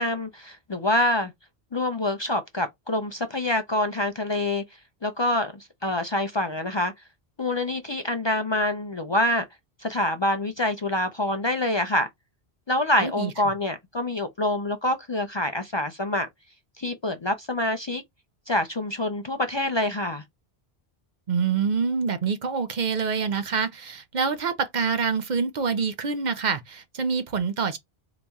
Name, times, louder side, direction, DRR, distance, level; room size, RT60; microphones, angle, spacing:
voice 1, 0.0-1.3 1.7-4.6 5.0-5.5 5.8-6.9 7.4-9.5 9.8-12.1 12.7-16.3 16.8-18.0 18.5-20.2, left 1 dB, 40° left, 0.4 m, -26 dB
voice 2, 13.0-13.3 21.3-27.8, right 5 dB, 50° right, 0.7 m, -26 dB
4.0 x 2.9 x 3.5 m
omnidirectional pair, 1.1 m